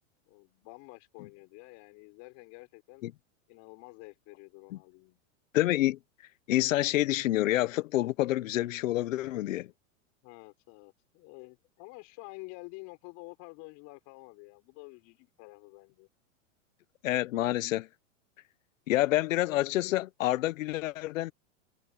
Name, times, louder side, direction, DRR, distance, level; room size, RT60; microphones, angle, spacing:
voice 1, 0.3-3.0 3.5-5.2 10.2-16.1, left 28 dB, 45° left, 6.2 m, -49 dB
voice 2, 5.5-6.0 6.5-9.7 17.0-17.9 18.9-21.3, left 16 dB, 75° left, 1.1 m, -28 dB
supercardioid pair, 140°, 39 cm